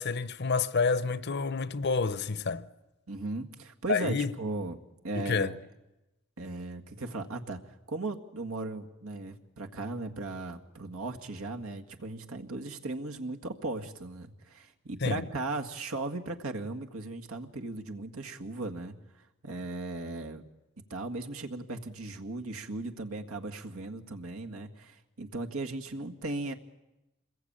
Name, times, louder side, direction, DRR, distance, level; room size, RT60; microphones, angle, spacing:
voice 1, 0.0-2.7 3.9-4.3 5.1-5.5 15.0-15.3, left 4 dB, 50° left, 0.8 m, -29 dB
voice 2, 3.1-5.6 6.4-7.6 7.9-18.9 19.4-20.4 20.9-26.5, right 2 dB, 80° right, 1.9 m, -37 dB
27.0 x 21.5 x 8.8 m
head